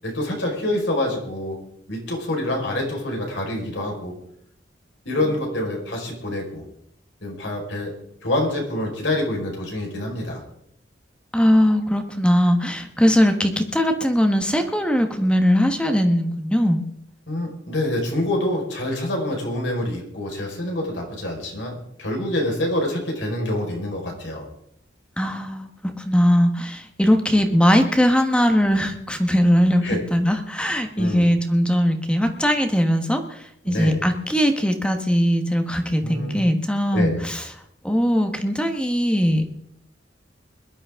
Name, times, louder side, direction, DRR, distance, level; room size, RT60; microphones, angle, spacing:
voice 1, 0.0-1.6 1.9-4.1 5.0-6.6 7.2-7.9 8.2-10.4 17.3-24.5 29.8-30.0 31.0-31.3 33.6-34.0 36.0-36.4 36.9-37.2, left 1 dB, 80° left, 0 dB, 4.9 m, -26 dB
voice 2, 11.3-16.8 25.2-37.5 37.8-39.5, equal, 5° left, 6 dB, 1.3 m, -20 dB
22.0 x 12.0 x 3.7 m, 0.72 s
head